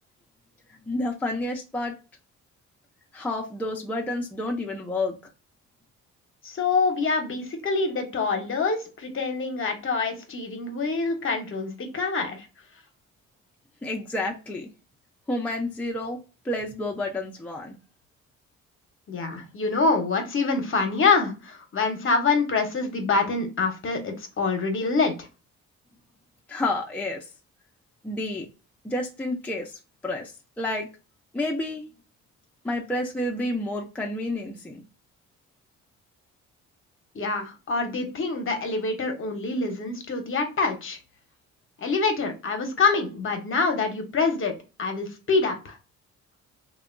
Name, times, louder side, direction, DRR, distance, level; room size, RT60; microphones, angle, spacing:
voice 1, 0.9-1.9 3.1-5.2 13.8-14.7 15.3-17.7 26.5-27.2 28.0-28.5 28.8-30.9 31.3-31.8 32.6-34.8, left 1 dB, 5° left, 0.5 m, -30 dB
voice 2, 6.4-12.5 19.1-25.3 37.1-41.0 41.8-45.8, left 4 dB, 45° left, 0.8 m, -26 dB
2.7 x 2.2 x 2.4 m
cardioid pair, 90°, 30 cm